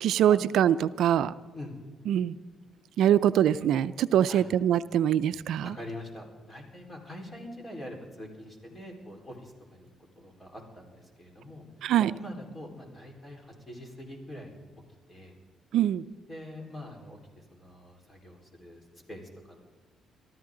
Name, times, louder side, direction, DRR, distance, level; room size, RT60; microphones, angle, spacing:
voice 1, 0.0-1.3 2.1-2.3 3.0-5.7 11.8-12.1 15.7-16.0, right 10 dB, 80° right, 15 dB, 0.4 m, -23 dB
voice 2, 5.6-9.9 10.2-11.6 12.0-14.5 15.1-15.4 16.3-18.8 19.1-19.6, left 1 dB, 20° left, 1 dB, 4.2 m, -44 dB
23.0 x 13.5 x 3.8 m, 1.4 s
cardioid pair, 90°, 0 cm